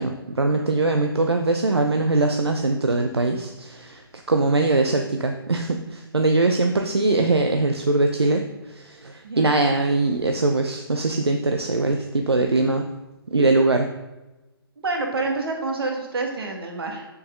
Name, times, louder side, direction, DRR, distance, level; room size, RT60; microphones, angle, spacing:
voice 1, 0.0-4.0 4.3-12.9 13.3-13.9, right 2 dB, 85° right, 5 dB, 0.7 m, -22 dB
voice 2, 14.8-17.1, right 3 dB, 70° right, 2 dB, 1.9 m, -28 dB
7.3 x 6.8 x 3.8 m, 1.1 s
figure-of-eight pair, 130°, 13 cm